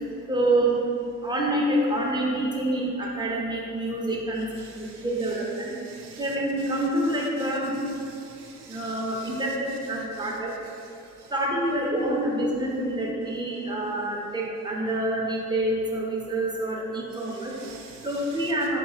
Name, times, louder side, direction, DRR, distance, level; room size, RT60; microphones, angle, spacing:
voice 1, 0.3-0.8 1.2-4.5 5.0-5.7 6.2-7.7 8.7-10.5 11.3-17.5 18.0-18.8, right 1 dB, 10° right, -3 dB, 1.0 m, -27 dB
voice 2, 4.6-11.3 17.1-18.5, right 5 dB, 75° right, 0 dB, 0.6 m, -49 dB
4.3 x 3.1 x 4.1 m, 2.6 s
hypercardioid pair, 45°, 41 cm